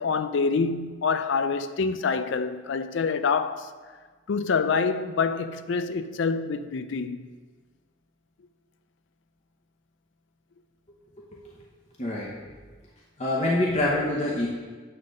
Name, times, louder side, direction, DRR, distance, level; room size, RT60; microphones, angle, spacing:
voice 1, 0.0-3.7 4.3-7.3, left 5 dB, 70° left, 0.4 m, -26 dB
voice 2, 12.0-12.5 13.2-14.5, left 1 dB, 35° left, 0.9 m, -26 dB
8.8 x 3.8 x 6.4 m
head